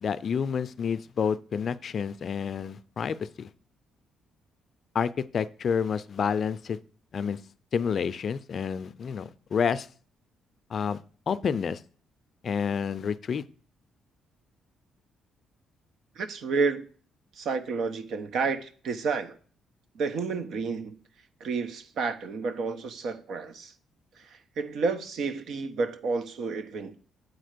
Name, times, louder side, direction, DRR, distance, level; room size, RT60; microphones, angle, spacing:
voice 1, 0.0-3.5 4.9-6.8 7.1-7.4 7.7-9.9 10.7-11.8 12.4-13.4, left 6 dB, 50° left, 0.4 m, -29 dB
voice 2, 16.1-16.9 17.3-19.4 19.9-21.0 21.4-23.7 24.2-27.0, right 4 dB, 70° right, 0.9 m, -30 dB
8.0 x 4.3 x 6.6 m
cardioid pair, 90°, 0 cm